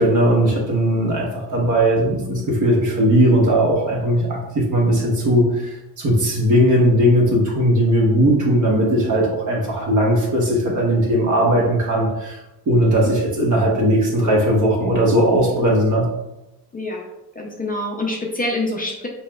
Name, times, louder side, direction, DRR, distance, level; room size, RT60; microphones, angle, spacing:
voice 1, 0.0-12.4 12.7-16.0, equal, 50° right, -2 dB, 1.1 m, -18 dB
voice 2, 16.7-17.1 17.4-19.1, left 1 dB, 25° left, 0 dB, 0.4 m, -26 dB
5.6 x 2.2 x 2.3 m, 0.95 s
cardioid pair, 120°, 37 cm